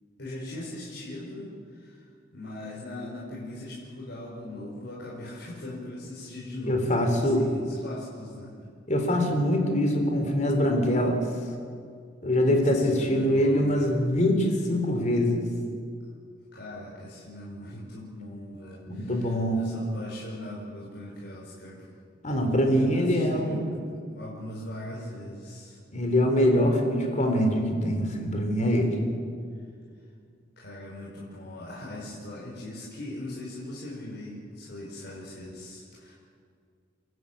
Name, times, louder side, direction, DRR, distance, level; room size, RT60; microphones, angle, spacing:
voice 1, 0.2-8.6 12.5-13.9 16.5-21.9 22.3-25.8 30.6-36.1, left 1 dB, 65° left, -5 dB, 5.3 m, -40 dB
voice 2, 6.6-7.4 8.9-11.2 12.2-15.4 18.9-19.6 22.2-23.7 25.9-29.0, equal, 40° left, 4 dB, 3.7 m, -24 dB
29.0 x 12.5 x 8.7 m, 2.2 s
head